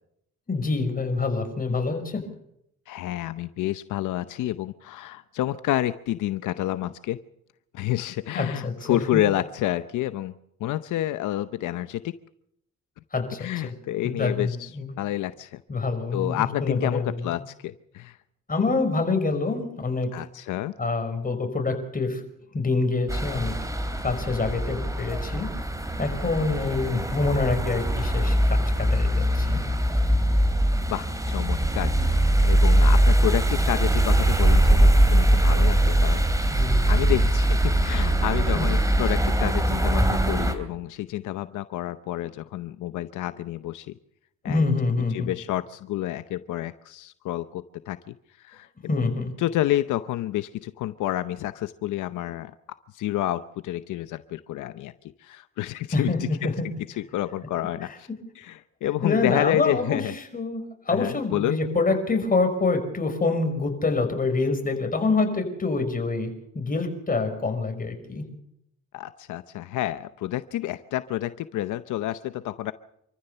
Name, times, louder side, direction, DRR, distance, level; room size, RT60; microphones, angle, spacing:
voice 1, 0.5-2.2 8.3-9.2 13.1-13.7 14.0-14.9 15.7-17.4 18.5-20.1 20.8-22.2 22.5-23.5 24.0-25.5 26.0-29.6 36.5-37.2 38.5-38.7 44.4-45.3 48.9-49.3 55.9-56.7 59.0-60.0 60.3-68.3, left 3 dB, 30° left, 6 dB, 5.5 m, -26 dB
voice 2, 2.9-7.2 7.7-10.3 10.6-12.1 13.4-14.7 15.0-15.6 16.1-18.2 20.1-20.7 30.9-36.2 36.8-43.9 44.4-44.7 45.1-48.1 48.4-48.7 49.4-52.5 52.9-54.9 55.2-56.5 57.1-58.1 58.4-60.1 60.9-61.6 68.9-72.7, left 14 dB, 80° left, 12 dB, 0.8 m, -29 dB
sound 1, 23.1-40.5, right 1 dB, 10° right, 3.1 m, -21 dB
27.0 x 14.5 x 6.8 m, 0.76 s
cardioid pair, 90°, 30 cm